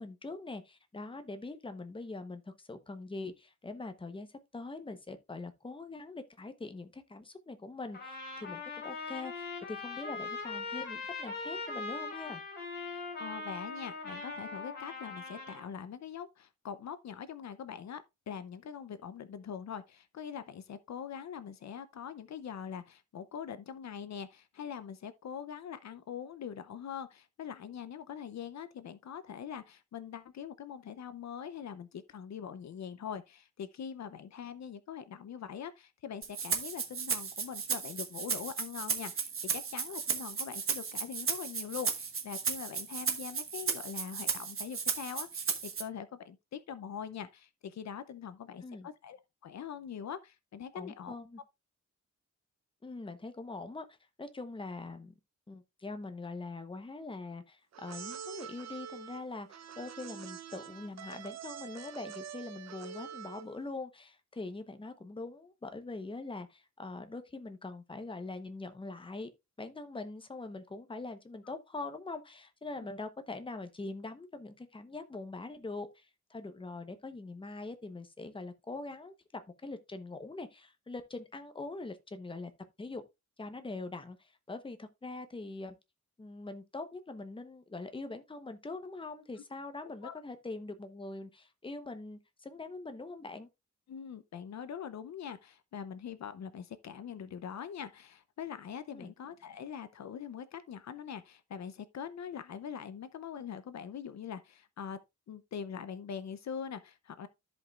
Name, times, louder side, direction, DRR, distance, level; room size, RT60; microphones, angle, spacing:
voice 1, 0.0-12.4 48.6-48.9 50.7-51.4 52.8-53.8 54.2-55.1 55.5-69.3 69.6-82.5 82.8-83.0 83.4-85.8 86.2-93.5 98.9-99.1, left 3 dB, 15° left, 0.9 m, -43 dB
Trumpet, 7.9-15.7, left 3 dB, 35° left, 4.0 m, -41 dB
voice 2, 12.9-51.1 90.0-90.2 93.9-105.0 105.3-107.3, left 8 dB, 65° left, 0.6 m, -43 dB
Rattle (instrument), 36.2-45.8, right 6 dB, 45° right, 1.3 m, -35 dB
sound 1, 57.7-63.6, right 8 dB, 65° right, 0.7 m, -46 dB
14.0 x 5.2 x 2.4 m
wide cardioid pair, 150°, 29 cm